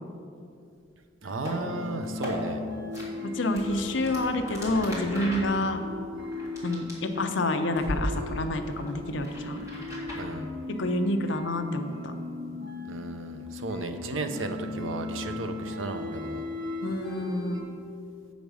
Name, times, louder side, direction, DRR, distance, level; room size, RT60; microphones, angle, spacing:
sound 1, 1.2-17.6, left 2 dB, 55° right, 1.5 m, -37 dB
voice 1, 1.2-2.6 3.8-4.1 10.1-10.5 12.9-16.4, right 3 dB, 80° right, 7 dB, 0.6 m, -34 dB
sound 2, 1.3-1.6 2.0-2.3 2.9-3.1 3.5-7.4 7.8-8.0 8.4-10.2, left 1 dB, 15° right, 1.9 m, -38 dB
voice 2, 3.2-5.8 6.6-9.6 10.7-12.1 16.8-17.6, left 1 dB, 65° left, 7 dB, 0.6 m, -28 dB
8.0 x 5.2 x 6.3 m, 2.5 s
head